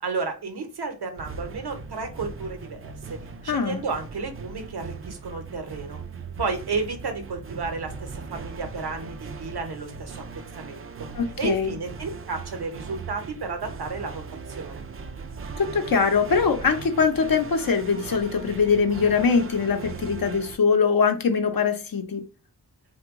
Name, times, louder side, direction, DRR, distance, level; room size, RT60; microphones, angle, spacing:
voice 1, 0.0-6.0 6.4-10.2 10.6-11.1 11.4-14.2 14.5-14.8, right 4 dB, 75° right, 0.8 m, -32 dB
sound 1, 1.2-20.6, right 4 dB, 35° right, 0.4 m, -39 dB
voice 2, 3.5-3.8 11.1-11.7 15.6-22.2, left 5 dB, 60° left, 0.7 m, -22 dB
2.9 x 2.2 x 3.5 m
cardioid pair, 45°, 39 cm